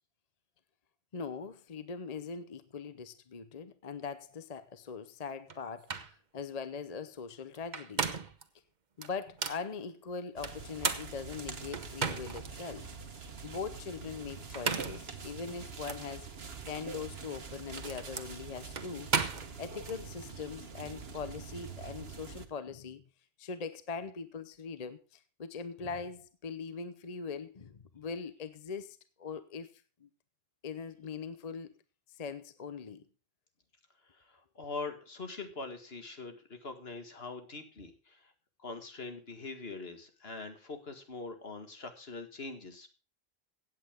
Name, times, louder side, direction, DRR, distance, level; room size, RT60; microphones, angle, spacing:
voice 1, 1.1-8.1 9.0-12.9 13.4-16.3 16.7-19.1 19.6-23.0 23.4-29.7 30.0-30.1 30.6-31.7 32.1-33.0, left 5 dB, 40° left, 0.8 m, -41 dB
sound 1, 5.5-5.6 5.9-6.1 7.6-8.4 9.0-9.6 10.4-12.5 13.0-13.1 14.4-15.1 15.8-16.0 17.2-20.0, right 5 dB, 45° right, 1.1 m, -35 dB
sound 2, 10.4-22.5, right 5 dB, 70° right, 1.5 m, -45 dB
voice 2, 34.1-38.3 38.6-42.9, left 3 dB, 70° left, 2.2 m, -43 dB
16.5 x 8.6 x 3.6 m
omnidirectional pair, 1.1 m